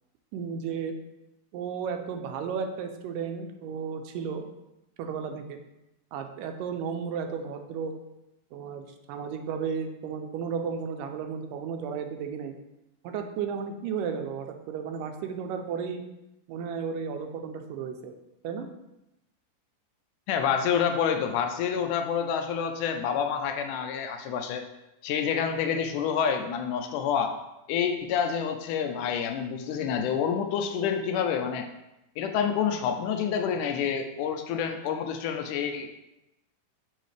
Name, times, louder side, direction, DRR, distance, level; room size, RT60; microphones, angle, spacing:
voice 1, 0.3-0.9 1.5-4.5 5.0-5.6 6.1-7.9 8.5-12.6 13.0-16.0 16.5-18.1 18.4-18.7, right 6 dB, 85° right, 6 dB, 2.3 m, -33 dB
voice 2, 20.3-24.6 25.0-27.4 27.7-31.7 32.2-35.9, left 7 dB, 80° left, 6 dB, 2.0 m, -28 dB
6.6 x 6.4 x 3.3 m, 0.92 s
omnidirectional pair, 3.8 m